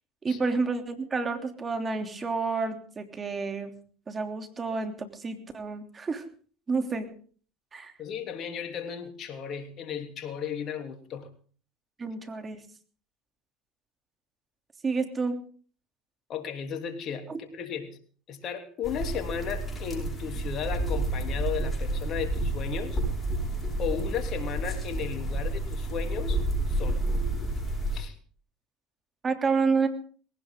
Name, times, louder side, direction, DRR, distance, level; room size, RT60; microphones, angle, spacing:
voice 1, 0.2-3.7 4.1-6.2 6.7-7.1 7.7-7.9 12.0-12.6 14.8-15.4 17.3-17.4 29.2-29.9, right 4 dB, 25° right, 6 dB, 3.2 m, -29 dB
voice 2, 8.0-11.3 16.3-18.0 18.3-23.0 23.8-26.4 26.7-27.0 27.9-28.2, left 7 dB, 50° left, 5 dB, 3.2 m, -35 dB
sound 1, 18.8-28.0, right 1 dB, 25° left, 7.8 m, -30 dB
20.0 x 17.5 x 3.9 m, 0.43 s
supercardioid pair, 85°, 0 cm